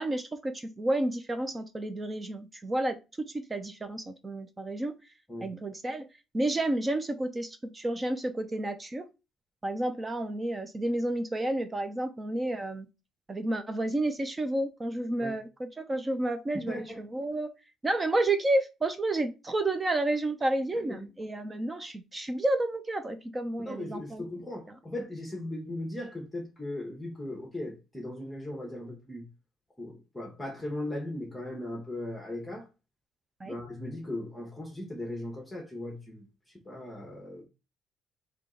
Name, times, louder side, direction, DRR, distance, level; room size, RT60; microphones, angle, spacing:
voice 1, 0.0-5.0 5.4-6.1 6.3-9.1 9.6-12.9 13.3-17.5 17.8-24.3 24.7-24.8 33.4-33.6, right 1 dB, 20° right, 0.5 m, -31 dB
voice 2, 16.7-17.0 20.7-21.1 23.6-29.3 29.8-32.7 33.4-36.3 36.7-37.4, left 1 dB, 5° left, 1.0 m, -38 dB
3.6 x 2.8 x 3.7 m
cardioid pair, 125°, 0 cm